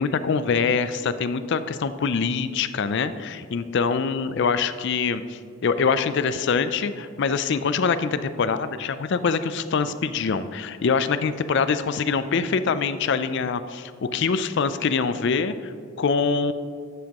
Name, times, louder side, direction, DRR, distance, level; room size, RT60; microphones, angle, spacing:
voice 1, 0.0-15.7 16.0-16.5, left 5 dB, 50° left, 12 dB, 0.4 m, -24 dB
11.0 x 7.3 x 3.0 m, 2.1 s
head